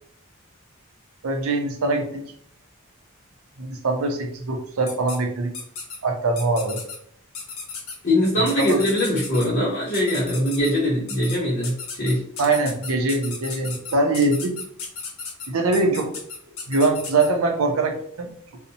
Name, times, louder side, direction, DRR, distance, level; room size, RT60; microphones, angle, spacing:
voice 1, 1.2-2.2 3.6-5.5 6.0-6.9 8.4-8.8 12.4-14.6 15.5-16.1 16.7-18.3, right 3 dB, 70° right, 4 dB, 0.5 m, -23 dB
sound 1, 4.9-5.2 5.5-6.0 6.4-7.0 7.3-7.9 8.5-9.5 9.9-10.7 11.1-11.4 11.6-17.3, left 5 dB, 75° left, 0.7 m, -34 dB
voice 2, 8.0-12.2, left 1 dB, 35° left, -6 dB, 0.6 m, -22 dB
2.6 x 2.0 x 2.6 m, 0.65 s
head